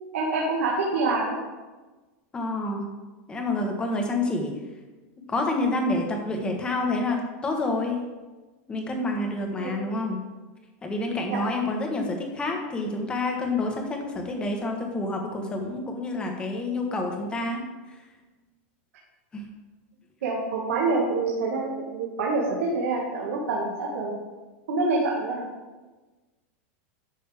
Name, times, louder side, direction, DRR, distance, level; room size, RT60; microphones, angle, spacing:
voice 1, 0.1-1.4 9.6-9.8 11.3-11.4 20.2-24.2 24.7-25.4, right 3 dB, 85° right, -3 dB, 1.8 m, -26 dB
voice 2, 2.3-2.9 3.3-4.5 5.3-8.0 8.7-10.2 10.8-17.6 19.3-19.4, left 2 dB, 15° left, 2 dB, 1.3 m, -28 dB
11.5 x 6.5 x 3.5 m, 1.2 s
supercardioid pair, 165°, 7 cm